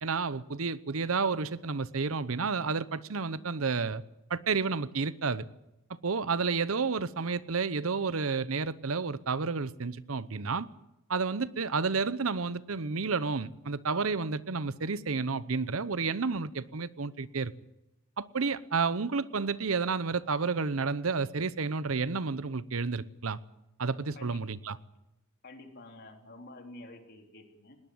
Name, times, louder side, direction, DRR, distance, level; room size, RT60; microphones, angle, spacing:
voice 1, 0.0-4.0 4.3-5.5 6.0-10.7 11.1-17.5 18.2-23.4 23.8-24.8, right 4 dB, 85° right, 0.8 m, -31 dB
voice 2, 25.4-27.8, left 2 dB, 55° left, 3.6 m, -49 dB
20.5 x 18.0 x 7.9 m
head